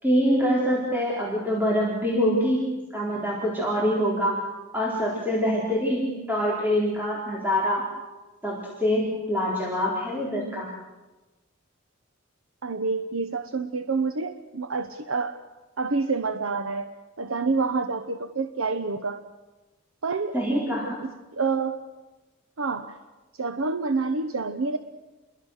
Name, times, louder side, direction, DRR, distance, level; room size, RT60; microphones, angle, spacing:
voice 1, 0.0-2.7 2.9-4.4 4.7-7.8 8.4-10.7 20.3-21.0, equal, 10° right, -5 dB, 4.1 m, -25 dB
voice 2, 12.6-15.3 15.8-16.9 17.2-19.2 20.0-20.4 21.0-21.8 22.6-23.0 23.4-24.8, right 4 dB, 90° right, 8 dB, 1.0 m, -28 dB
29.5 x 22.5 x 6.5 m, 1.2 s
head